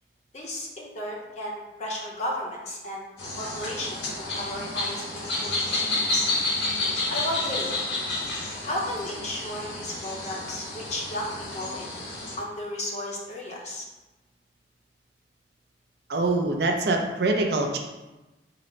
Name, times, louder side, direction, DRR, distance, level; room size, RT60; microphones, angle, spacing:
voice 1, 0.3-3.0 3.3-5.9 6.1-6.3 7.1-7.8 8.6-12.0 12.4-13.9, left 1 dB, 40° left, -2 dB, 0.7 m, -34 dB
sound 1, 3.2-12.4, left 2 dB, 70° left, 1.0 m, -30 dB
voice 2, 16.1-17.8, right 2 dB, 65° right, 2 dB, 0.5 m, -24 dB
3.8 x 2.0 x 4.3 m, 1.1 s
head